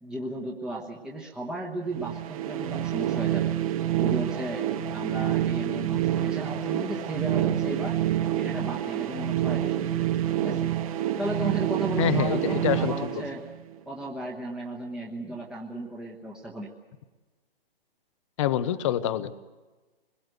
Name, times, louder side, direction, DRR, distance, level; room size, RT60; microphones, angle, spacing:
voice 1, 0.0-3.5 4.0-4.7 4.9-8.0 8.4-10.1 10.4-10.7 11.2-13.5 13.9-16.7, right 1 dB, ahead, -3 dB, 1.3 m, -35 dB
sound 1, 1.9-13.8, right 12 dB, 35° right, 1.2 m, -27 dB
voice 2, 12.0-13.2 18.4-19.4, left 11 dB, 30° left, 13 dB, 0.8 m, -26 dB
24.5 x 22.0 x 8.0 m, 1.2 s
hypercardioid pair, 145°, 30 cm